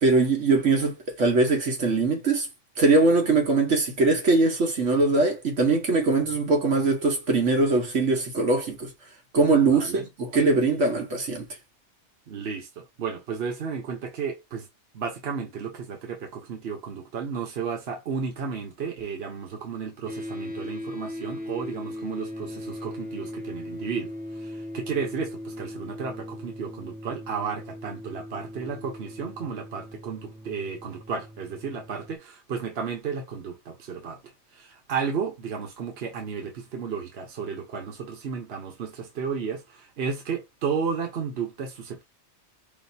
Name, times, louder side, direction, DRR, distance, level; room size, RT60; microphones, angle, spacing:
voice 1, 0.0-2.5 2.8-8.9 9.3-11.5, right 3 dB, 80° right, 1.6 m, -22 dB
voice 2, 9.6-10.0 12.3-14.7 14.9-24.1 24.4-34.2 34.5-42.0, right 6 dB, 60° right, 1.3 m, -33 dB
sound 1, 20.1-32.2, left 1 dB, 10° right, 0.5 m, -38 dB
5.3 x 2.7 x 2.7 m
omnidirectional pair, 1.2 m